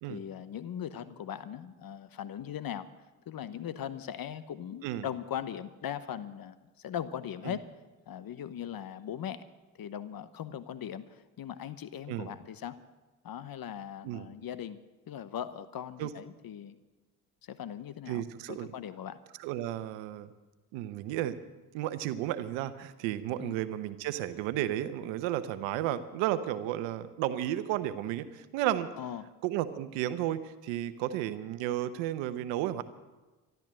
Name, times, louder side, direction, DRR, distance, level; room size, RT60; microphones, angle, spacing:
voice 1, 0.1-2.9 3.3-7.6 8.1-9.5 9.7-12.8 13.2-14.8 15.1-16.8 17.4-18.2 18.5-19.2 23.4-23.6 29.0-29.3, left 9 dB, 55° left, 14 dB, 1.0 m, -39 dB
voice 2, 18.1-18.7 19.4-20.3 20.7-21.4 21.7-28.9 29.4-32.8, right 13 dB, 85° right, 12 dB, 1.0 m, -33 dB
13.5 x 12.0 x 7.6 m, 1.2 s
supercardioid pair, 60°, 43 cm